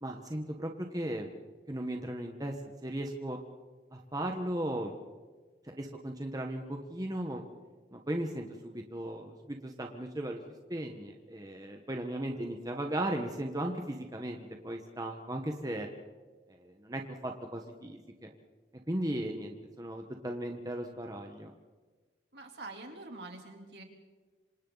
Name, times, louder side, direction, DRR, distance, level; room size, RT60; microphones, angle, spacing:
voice 1, 0.0-1.3 1.7-2.5 2.8-3.4 3.9-4.9 5.7-7.4 7.9-10.4 10.7-15.9 16.5-18.3 18.9-21.5, right 1 dB, 20° right, 2 dB, 1.3 m, -36 dB
voice 2, 22.3-23.8, right 2 dB, 60° right, 2 dB, 3.3 m, -45 dB
27.5 x 26.0 x 4.1 m, 1.3 s
head